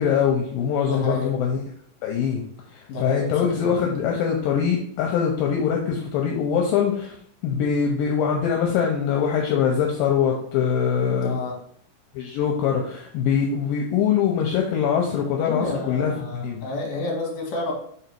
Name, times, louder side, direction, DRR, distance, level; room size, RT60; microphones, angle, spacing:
voice 1, 0.0-1.6 2.0-2.4 2.7-7.2 7.4-11.4 12.1-16.6, left 7 dB, 80° left, 1 dB, 2.3 m, -23 dB
voice 2, 0.9-1.3 2.9-4.0 11.2-11.6 15.4-17.7, left 2 dB, 55° left, -2 dB, 2.5 m, -30 dB
5.4 x 3.9 x 4.5 m, 0.64 s
omnidirectional pair, 4.2 m